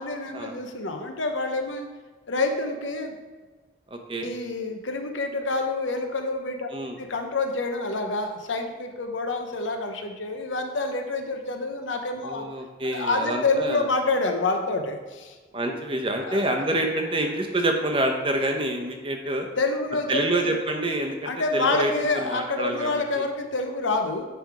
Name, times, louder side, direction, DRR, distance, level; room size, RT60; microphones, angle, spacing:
voice 1, 0.0-1.9 2.3-3.2 4.2-6.7 7.0-12.5 12.8-15.3 15.6-15.8 16.2-16.7 19.6-20.5 21.2-24.3, left 3 dB, 85° left, 4 dB, 0.9 m, -27 dB
voice 2, 3.9-4.3 6.7-7.0 12.2-13.8 15.5-19.5 20.1-21.9 22.2-22.9 23.2-23.3, right 1 dB, 25° right, 3 dB, 0.7 m, -27 dB
10.5 x 3.4 x 4.7 m, 1.4 s
head